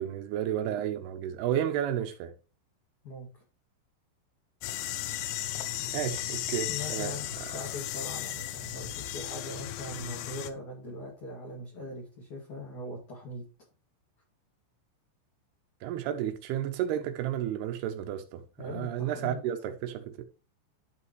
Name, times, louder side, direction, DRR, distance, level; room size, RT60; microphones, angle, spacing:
voice 1, 0.0-2.3 5.9-7.1 7.5-7.6 15.8-20.2, right 10 dB, 85° right, 2.3 m, -32 dB
voice 2, 3.0-3.4 6.7-13.4 18.6-19.4, left 1 dB, 45° left, 3.0 m, -41 dB
sound 1, 4.6-10.5, left 12 dB, 85° left, 2.3 m, -35 dB
12.0 x 5.7 x 3.1 m
omnidirectional pair, 5.6 m